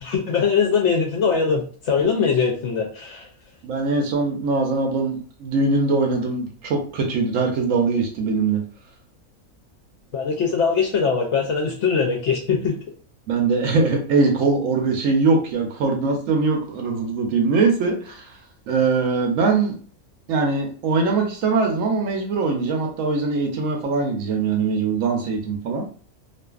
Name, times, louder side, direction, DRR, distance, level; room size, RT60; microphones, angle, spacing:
voice 1, 0.0-3.3 10.1-12.7, left 5 dB, 65° left, 1 dB, 0.7 m, -21 dB
voice 2, 3.6-8.6 13.3-18.2 18.7-19.7 20.3-25.9, right 4 dB, 70° right, 2 dB, 1.0 m, -22 dB
2.5 x 2.4 x 2.3 m, 0.42 s
omnidirectional pair, 1.5 m